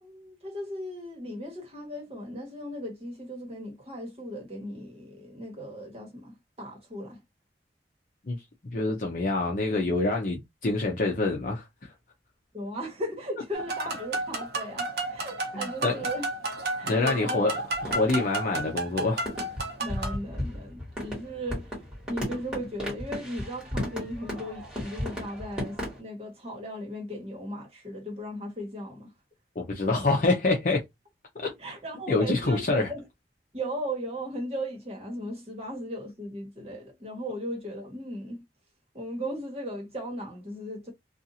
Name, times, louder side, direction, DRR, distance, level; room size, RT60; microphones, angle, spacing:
voice 1, 0.0-7.2 12.5-16.3 16.8-17.4 19.8-21.8 22.1-29.1 31.4-33.0 33.5-38.4 38.9-40.9, equal, 35° right, 1.3 m, -37 dB
voice 2, 8.7-11.9 15.5-16.0 16.8-17.5 17.8-19.3 29.6-30.8 31.4-31.5 32.1-32.9, left 2 dB, 50° left, 0.6 m, -26 dB
sound 1, 13.5-20.2, right 2 dB, 65° right, 0.8 m, -32 dB
sound 2, 17.8-18.6 18.9-19.0 19.2-26.0, left 1 dB, 5° right, 1.5 m, -35 dB
2.6 x 2.4 x 2.7 m
head